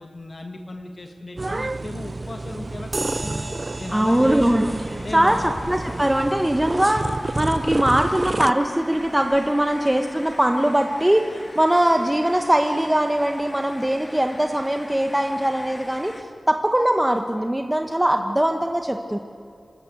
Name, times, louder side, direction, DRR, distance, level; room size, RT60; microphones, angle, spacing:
voice 1, 0.0-3.4 3.8-4.3 5.0-5.5, left 2 dB, 50° left, 4 dB, 1.7 m, -36 dB
sound 1, 1.4-8.5, right 2 dB, 40° right, 0.4 m, -29 dB
sound 2, 2.9-10.8, right 2 dB, 55° right, 3.7 m, -39 dB
voice 2, 3.9-4.7 5.1-19.2, right 1 dB, 15° right, 5 dB, 1.2 m, -21 dB
sound 3, 4.2-16.2, left 1 dB, 30° left, 1.9 m, -41 dB
27.0 x 13.0 x 8.1 m, 2.5 s
wide cardioid pair, 60°, 0 cm